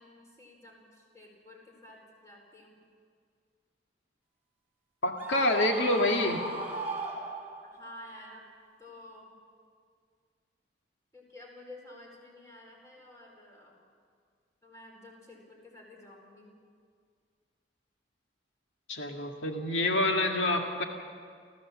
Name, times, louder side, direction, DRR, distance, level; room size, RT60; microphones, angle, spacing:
voice 1, 0.0-2.8 7.6-8.4 8.8-9.3 11.1-13.8 14.6-16.5, left 1 dB, 15° left, -1 dB, 4.4 m, -51 dB
voice 2, 5.0-6.4 18.9-20.8, left 1 dB, 85° left, 2 dB, 1.9 m, -27 dB
Screaming, 5.2-7.9, right 2 dB, 10° right, 2.9 m, -37 dB
29.0 x 14.5 x 7.3 m, 2.1 s
head